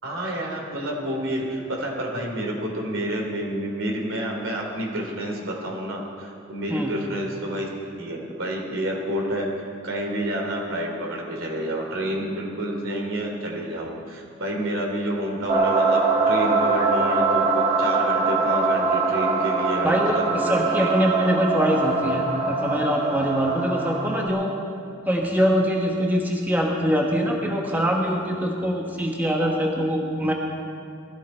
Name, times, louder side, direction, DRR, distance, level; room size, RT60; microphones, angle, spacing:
voice 1, 0.0-7.7 8.0-9.5 9.8-16.0 16.2-20.9, right 1 dB, 70° right, 0 dB, 3.2 m, -29 dB
sound 1, 15.5-24.3, right 3 dB, 30° right, 1.5 m, -23 dB
voice 2, 19.8-24.5 25.1-30.3, equal, 10° right, -1 dB, 1.2 m, -23 dB
20.0 x 13.5 x 4.5 m, 2.5 s
head